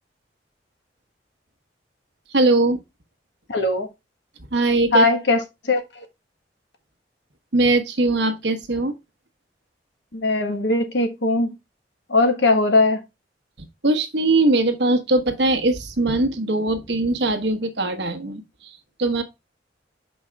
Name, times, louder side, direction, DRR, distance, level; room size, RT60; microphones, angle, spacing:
voice 1, 2.3-2.8 4.5-5.1 7.5-8.9 13.8-19.2, right 2 dB, 70° right, 1.3 m, -21 dB
voice 2, 3.5-3.9 4.9-5.4 5.7-5.8 10.1-11.5 12.1-13.0, left 2 dB, 70° left, 1.5 m, -19 dB
6.3 x 5.3 x 3.4 m
head